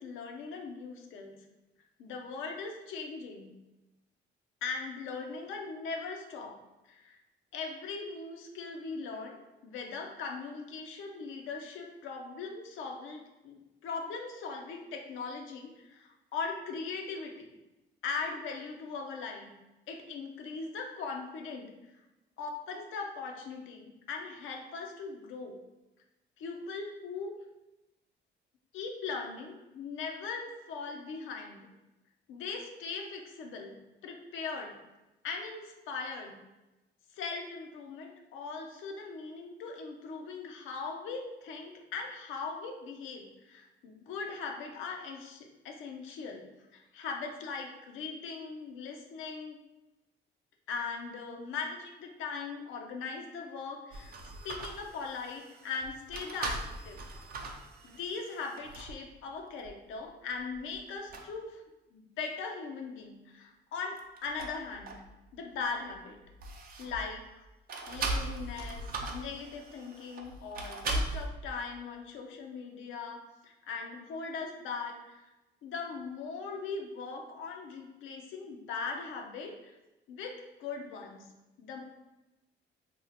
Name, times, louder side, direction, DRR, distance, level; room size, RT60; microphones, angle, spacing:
voice 1, 0.0-1.4 2.0-3.5 4.6-6.6 6.9-7.2 7.5-17.5 18.0-19.5 19.9-21.7 22.4-25.6 26.4-27.4 28.7-31.6 32.3-33.8 34.0-34.8 35.2-36.4 37.1-46.5 46.7-49.6 50.7-54.1 54.4-57.0 57.8-61.6 61.9-65.0 65.3-66.2 66.8-67.3 67.9-75.2 75.6-79.8 80.1-81.3 81.6-81.8, left 4 dB, 85° left, 2 dB, 0.5 m, -40 dB
sound 1, 53.9-59.0 59.6-59.7 60.4-60.8 61.1-61.3 63.9-65.3 65.6-67.2 67.7-71.3, right 2 dB, 50° right, 0.5 m, -39 dB
2.7 x 2.1 x 4.0 m, 1.0 s
cardioid pair, 90°, 20 cm